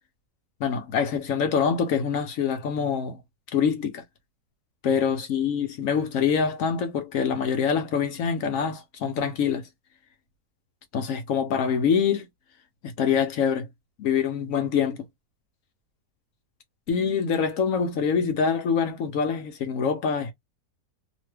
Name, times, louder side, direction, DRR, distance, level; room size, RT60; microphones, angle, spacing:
voice 1, 0.6-3.2 3.5-4.0 4.8-9.6 10.9-12.3 12.8-13.7 14.0-15.1 16.9-20.3, left 6 dB, 65° left, 0.9 m, -25 dB
2.9 x 2.1 x 3.2 m
omnidirectional pair, 1.7 m